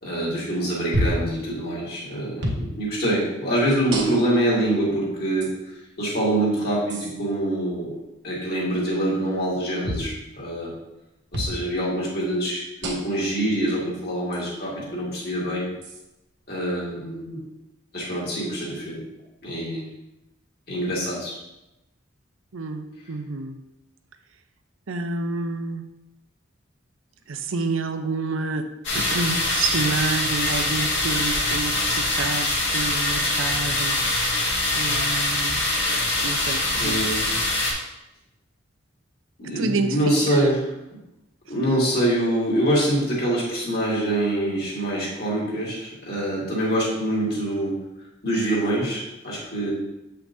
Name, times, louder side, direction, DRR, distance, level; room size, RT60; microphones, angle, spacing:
voice 1, 0.0-8.0 8.2-10.7 11.3-15.7 16.5-17.4 17.9-19.0 19.4-19.8 20.7-21.4 36.7-37.3 39.4-41.0 41.5-47.7 48.2-49.7, right 1 dB, 50° left, -6 dB, 2.3 m, -25 dB
sound 1, 0.9-1.3 2.4-2.7 3.9-4.4 5.4-5.5 6.9-7.1 9.8-10.1 11.3-11.6 12.8-13.2 14.3-14.4 15.8-16.0, equal, 60° right, 1.2 m, -27 dB
voice 2, 22.5-23.6 24.9-25.8 27.3-28.7 28.9-34.0 34.7-35.6 36.2-37.0 39.6-40.4, right 3 dB, 90° right, 8 dB, 0.6 m, -28 dB
sound 2, 28.8-37.7, left 2 dB, 70° left, 1.9 m, -24 dB
7.5 x 5.7 x 2.7 m, 0.92 s
head